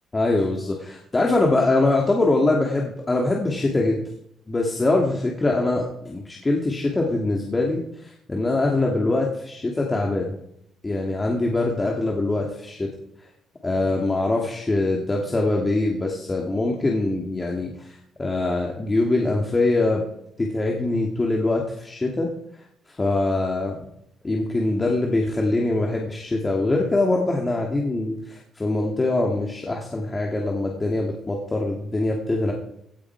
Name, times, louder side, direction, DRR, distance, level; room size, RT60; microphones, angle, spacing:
voice 1, 0.1-4.0 4.5-10.3 10.8-12.9 13.6-20.0 20.4-22.3 22.9-23.9 24.2-32.5, left 2 dB, 25° left, 0 dB, 2.7 m, -23 dB
17.0 x 8.7 x 4.9 m, 0.75 s
cardioid pair, 90°, 0 cm